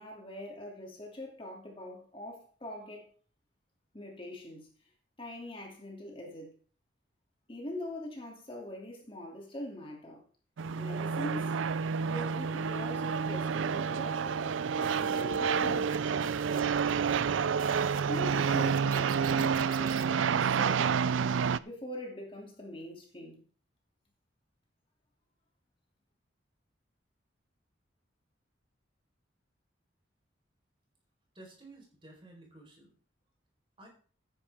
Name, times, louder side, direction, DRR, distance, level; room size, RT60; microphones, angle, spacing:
voice 1, 0.0-3.1 3.9-4.7 5.2-6.5 7.5-10.2 10.7-11.6 12.0-16.8 17.9-23.4, left 1 dB, 30° left, 2.7 m, -43 dB
sound 1, 10.6-21.6, right 6 dB, 85° right, 0.4 m, -29 dB
sound 2, 14.8-20.1, right 4 dB, 45° right, 0.9 m, -48 dB
voice 2, 31.3-32.9 33.8-33.9, right 2 dB, 25° right, 4.3 m, -53 dB
14.0 x 10.0 x 3.6 m
head